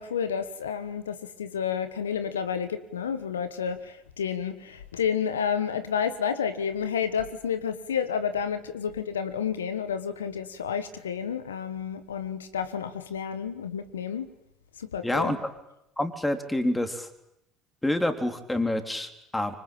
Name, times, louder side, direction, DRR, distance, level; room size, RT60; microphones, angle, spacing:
voice 1, 0.0-14.3 14.8-15.4, left 7 dB, 85° left, 1.3 m, -30 dB
voice 2, 15.0-15.4 16.0-17.1 17.8-19.5, left 1 dB, 10° left, 3.7 m, -27 dB
26.0 x 25.0 x 8.9 m
hypercardioid pair, 70°, 0 cm